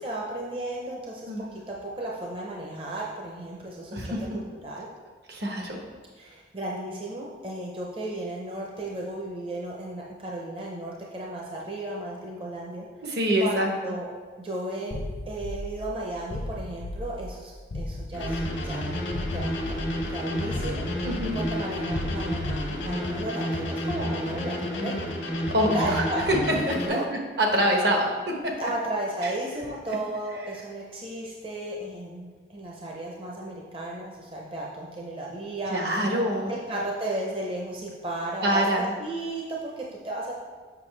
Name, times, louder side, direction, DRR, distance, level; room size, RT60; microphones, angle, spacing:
voice 1, 0.0-4.9 6.2-12.9 13.4-14.1 14.4-15.0 15.3-21.1 21.3-25.0 25.7-26.2 26.8-27.0 28.6-35.8 36.5-38.6 39.0-40.3, right 1 dB, 30° right, -3 dB, 0.6 m, -34 dB
voice 2, 3.9-4.2 5.3-5.8 13.0-13.7 21.0-21.4 25.5-26.4 26.7-27.0 27.4-28.5 29.2-29.3 35.7-36.5 38.4-38.9, equal, 65° right, 1 dB, 1.0 m, -25 dB
sound 1, 14.9-23.2, left 1 dB, 60° left, 0.5 m, -36 dB
sound 2, 18.1-26.9, left 1 dB, 90° left, 1.4 m, -30 dB
6.8 x 5.6 x 3.3 m, 1.5 s
head